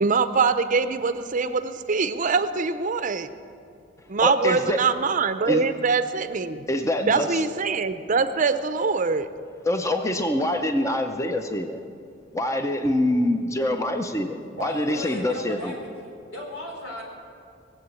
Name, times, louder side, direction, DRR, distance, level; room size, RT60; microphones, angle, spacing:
voice 1, 0.0-3.3 4.1-6.6 7.0-9.3, right 4 dB, 45° right, 11 dB, 0.6 m, -23 dB
voice 2, 4.2-4.8 5.5-5.6 6.7-7.4 9.7-11.8 12.3-15.7, left 1 dB, 15° left, 6 dB, 0.6 m, -25 dB
voice 3, 14.3-17.0, left 1 dB, 85° left, -1 dB, 4.3 m, -36 dB
20.5 x 8.0 x 8.4 m, 2.4 s
head